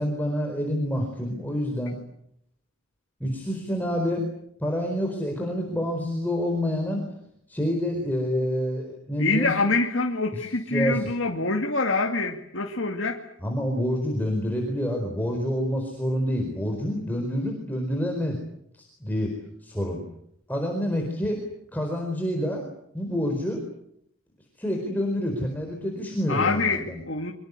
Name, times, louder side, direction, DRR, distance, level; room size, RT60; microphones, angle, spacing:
voice 1, 0.0-1.9 3.2-4.3 4.6-7.0 7.5-9.5 10.3-10.4 10.7-11.1 13.4-18.4 18.8-19.3 19.6-20.0 20.5-21.4 21.7-22.7 22.9-23.6 24.6-27.0, equal, 10° left, 2 dB, 4.4 m, -27 dB
voice 2, 9.2-13.2 26.3-27.3, left 3 dB, 65° left, 2 dB, 2.4 m, -25 dB
24.5 x 24.0 x 8.3 m, 0.73 s
head